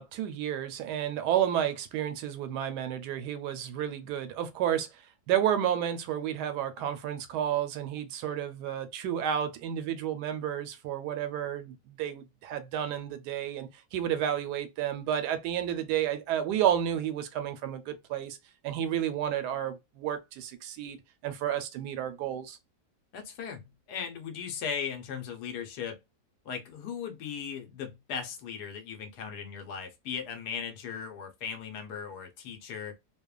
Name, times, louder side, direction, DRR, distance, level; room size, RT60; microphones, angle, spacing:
voice 1, 0.0-18.4 18.6-21.0 21.2-22.6, right 10 dB, 85° right, 1.2 m, -31 dB
voice 2, 23.1-26.0 26.4-33.0, left 7 dB, 80° left, 1.2 m, -38 dB
2.9 x 2.1 x 2.3 m
omnidirectional pair, 1.7 m